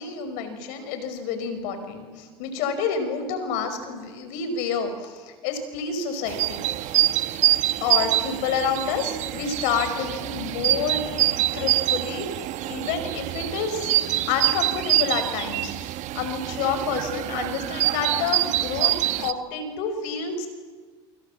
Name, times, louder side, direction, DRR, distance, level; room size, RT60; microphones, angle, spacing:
voice 1, 0.0-7.1 7.8-12.3 12.6-13.9 14.3-20.5, left 6 dB, 75° left, 8 dB, 5.6 m, -29 dB
sound 1, 6.3-19.3, right 13 dB, 60° right, 1.2 m, -25 dB
29.0 x 26.0 x 7.5 m, 1.5 s
supercardioid pair, 95°, 14 cm